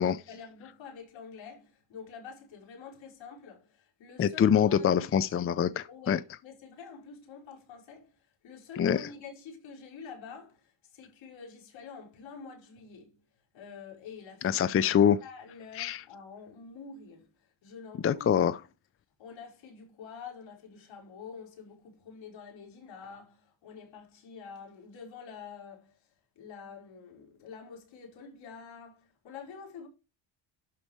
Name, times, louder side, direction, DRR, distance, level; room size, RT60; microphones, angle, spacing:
voice 1, 0.0-5.2 5.9-13.2 13.5-14.7 15.2-18.6 19.2-26.1 26.4-29.9, left 6 dB, 80° left, 5.3 m, -47 dB
voice 2, 4.2-6.2 8.8-9.1 14.4-15.2 15.7-16.0 18.0-18.6, left 8 dB, 30° left, 0.5 m, -25 dB
12.0 x 4.4 x 4.9 m
cardioid pair, 120°, 45 cm